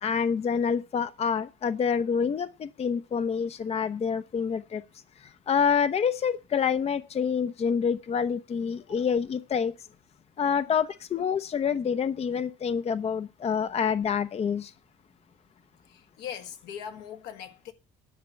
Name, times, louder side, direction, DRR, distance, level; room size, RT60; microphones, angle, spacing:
voice 1, 0.0-4.8 5.5-9.7 10.4-14.7, left 6 dB, 35° left, 0.7 m, -27 dB
voice 2, 8.8-9.1 10.5-10.8 15.9-17.7, left 8 dB, 75° left, 1.7 m, -41 dB
11.0 x 6.0 x 8.1 m
supercardioid pair, 85°, 18 cm